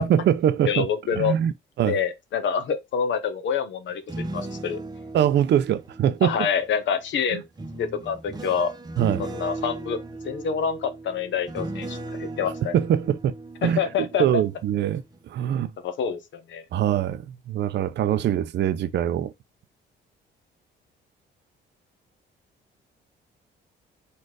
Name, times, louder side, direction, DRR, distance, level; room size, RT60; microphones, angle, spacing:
voice 1, 0.0-0.9 1.1-1.5 1.8-2.0 5.1-6.5 7.3-7.4 9.0-9.2 12.7-13.3 13.6-13.8 14.2-15.7 16.7-19.3, right 10 dB, 60° right, 0.5 m, -23 dB
voice 2, 0.7-1.3 1.8-4.0 4.3-4.8 6.2-7.4 7.8-8.7 9.2-10.0 10.2-12.7 13.6-14.4 15.8-16.6, left 7 dB, 70° left, 0.9 m, -27 dB
sound 1, 3.9-6.8 7.6-14.5 14.9-15.2, right 2 dB, 20° right, 0.8 m, -37 dB
4.3 x 2.5 x 4.6 m
cardioid pair, 90°, 20 cm